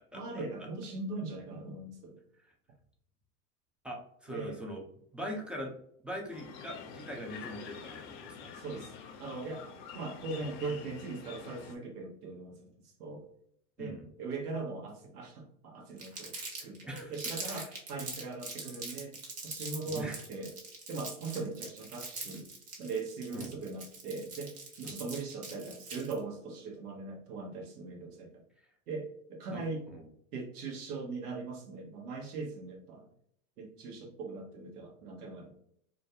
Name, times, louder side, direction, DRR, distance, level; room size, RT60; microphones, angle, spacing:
voice 1, 0.1-2.2 4.3-4.6 8.5-8.9 9.2-9.7 9.9-13.2 13.8-16.3 16.6-16.8 17.1-19.2 19.4-20.5 20.9-22.5 22.8-28.4 28.9-29.8 30.3-33.1 33.6-35.5, right 3 dB, 80° right, 1 dB, 1.0 m, -40 dB
voice 2, 3.8-4.8 5.1-5.7 6.0-8.5 13.8-14.1 16.9-17.1 17.4-17.7 19.9-20.2 23.3-23.5 24.8-24.9 29.5-29.6 29.9-30.0, equal, ahead, -1 dB, 0.4 m, -41 dB
sound 1, 6.3-11.8, left 6 dB, 55° left, 0.5 m, -47 dB
Crumpling crinkling, 16.0-26.2, right 3 dB, 35° right, 1.0 m, -42 dB
2.4 x 2.2 x 2.7 m, 0.67 s
hypercardioid pair, 90°, 45 cm